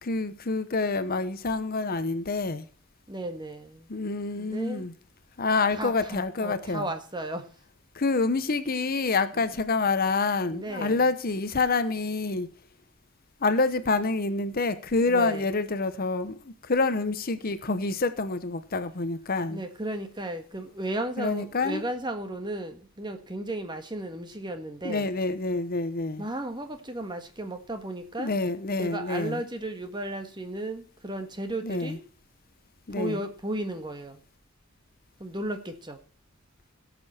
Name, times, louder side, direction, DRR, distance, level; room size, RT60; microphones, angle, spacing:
voice 1, 0.0-2.7 3.9-4.9 5.4-6.9 7.9-12.5 13.4-19.6 21.2-21.8 24.8-26.2 28.2-29.4 31.6-32.0 32.9-33.2, left 3 dB, 45° left, 0.8 m, -27 dB
voice 2, 3.1-3.9 4.4-4.9 5.8-7.5 10.5-11.1 15.1-15.4 19.5-25.1 26.2-28.3 28.8-32.0 32.9-34.2 35.2-36.0, right 1 dB, 20° right, 1.5 m, -34 dB
17.0 x 6.9 x 4.3 m
head